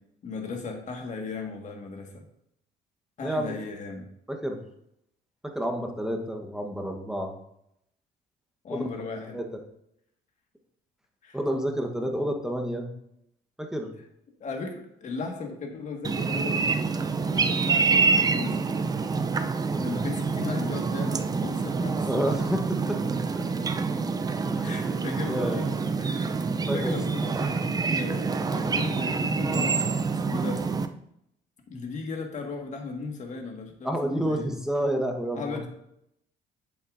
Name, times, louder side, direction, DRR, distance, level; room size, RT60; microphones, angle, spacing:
voice 1, 0.2-2.2 3.2-4.1 8.6-9.4 11.2-11.4 14.4-18.6 19.8-22.3 23.6-23.7 24.6-26.4 26.7-30.6 31.7-34.5 35.3-35.7, left 4 dB, 45° left, 2 dB, 1.7 m, -36 dB
voice 2, 3.2-3.5 4.3-4.6 5.4-7.3 8.7-8.9 9.3-9.5 11.3-12.9 13.6-13.9 19.6-20.0 22.0-23.4 24.6-24.7 25.3-25.6 26.7-27.0 33.8-35.7, equal, 5° right, 3 dB, 1.1 m, -30 dB
sound 1, 16.0-30.9, right 4 dB, 20° right, 0.5 m, -27 dB
8.3 x 7.1 x 2.6 m, 0.77 s
cardioid pair, 110°, 17 cm